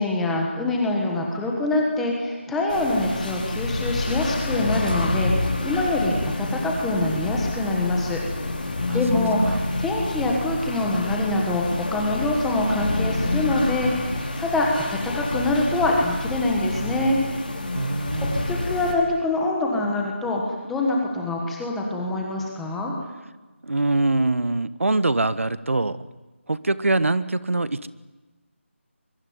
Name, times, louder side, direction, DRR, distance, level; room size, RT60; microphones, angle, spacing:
voice 1, 0.0-8.2 8.6-17.2 18.4-22.9, left 2 dB, ahead, -1 dB, 1.3 m, -25 dB
sound 1, 2.7-18.9, left 2 dB, 40° left, 4.7 m, -28 dB
voice 2, 8.9-9.6 17.7-18.5 23.6-26.0 26.5-27.9, right 2 dB, 80° right, 15 dB, 1.4 m, -24 dB
24.0 x 22.5 x 9.5 m, 1.2 s
figure-of-eight pair, 180°, 7 cm